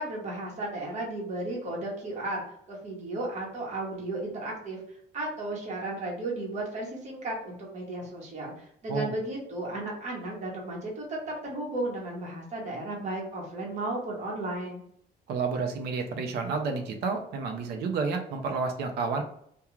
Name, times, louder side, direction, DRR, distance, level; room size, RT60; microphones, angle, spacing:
voice 1, 0.0-4.8 5.1-14.8, right 2 dB, 45° right, -2 dB, 1.0 m, -34 dB
voice 2, 15.3-19.2, right 4 dB, 75° right, 4 dB, 0.6 m, -30 dB
2.4 x 2.2 x 3.0 m, 0.68 s
cardioid pair, 110°, 17 cm